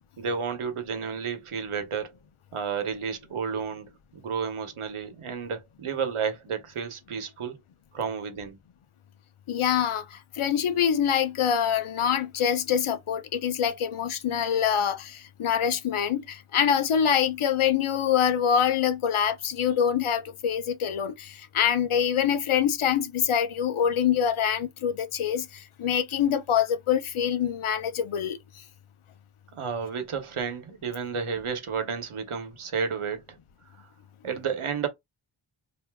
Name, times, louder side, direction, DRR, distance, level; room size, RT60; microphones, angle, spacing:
voice 1, 0.2-2.1 2.5-7.6 7.9-8.6 29.5-33.2 34.2-34.9, right 6 dB, 90° right, 0.9 m, -31 dB
voice 2, 9.5-28.4, left 8 dB, 80° left, 0.6 m, -25 dB
3.4 x 2.6 x 2.2 m
wide cardioid pair, 90°, 49 cm